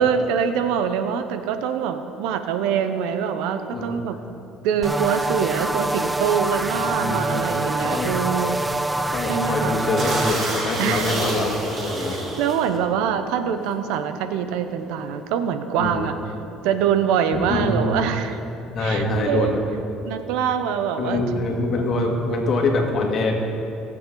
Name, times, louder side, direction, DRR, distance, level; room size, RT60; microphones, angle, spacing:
voice 1, 0.0-4.2 4.6-8.6 9.3-9.8 10.8-11.1 12.4-16.1 16.6-18.4 18.8-19.6 20.0-21.4, right 7 dB, 85° right, 9 dB, 0.8 m, -24 dB
voice 2, 3.7-4.2 6.7-7.5 7.8-8.2 9.0-12.2 15.8-16.1 17.5-18.0 18.7-19.6 21.0-23.3, left 2 dB, 45° left, 1 dB, 2.0 m, -24 dB
sound 1, 4.8-10.4, right 2 dB, 10° right, 0.4 m, -25 dB
sound 2, 8.9-9.2 9.5-9.6 9.9-12.8 13.5-13.7 14.0-15.2, right 2 dB, 30° right, 1.9 m, -29 dB
20.5 x 7.8 x 3.9 m, 2.9 s
cardioid pair, 120°, 0 cm